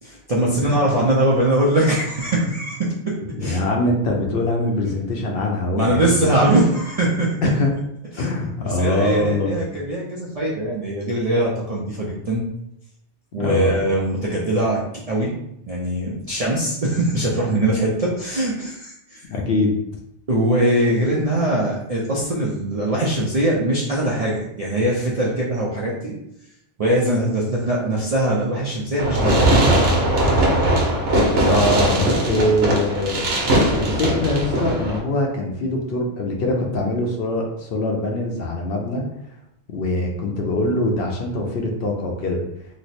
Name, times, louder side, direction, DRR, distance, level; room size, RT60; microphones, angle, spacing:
voice 1, 0.0-3.6 5.7-7.4 8.1-8.3 8.6-12.5 13.3-14.8 15.1-15.3 15.7-19.3 20.3-26.1 26.8-29.5, right 1 dB, 50° right, -5 dB, 0.4 m, -21 dB
voice 2, 3.3-6.4 7.4-7.7 8.2-9.6 13.4-13.8 19.3-19.7 31.4-33.3 33.8-39.0 39.7-42.4, left 1 dB, 60° left, 0 dB, 0.7 m, -23 dB
Fireworks, 29.0-35.0, right 1 dB, 70° right, 1.0 m, -19 dB
3.1 x 2.0 x 4.0 m, 0.79 s
omnidirectional pair, 1.2 m